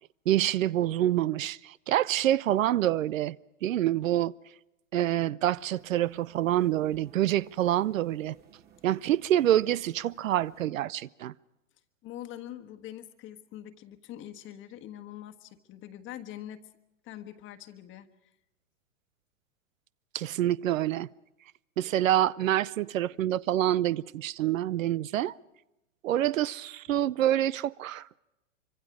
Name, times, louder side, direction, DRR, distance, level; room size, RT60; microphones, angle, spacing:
voice 1, 0.3-3.4 3.6-4.3 4.9-8.3 8.8-11.3 20.1-21.1 21.8-25.3 26.0-28.2, right 12 dB, 75° right, 0.7 m, -26 dB
sound 1, 5.4-10.7, right 8 dB, 25° right, 2.4 m, -59 dB
voice 2, 12.0-16.6 17.0-18.3, left 12 dB, 30° left, 1.4 m, -44 dB
25.5 x 25.0 x 4.9 m
hypercardioid pair, 125°, 40 cm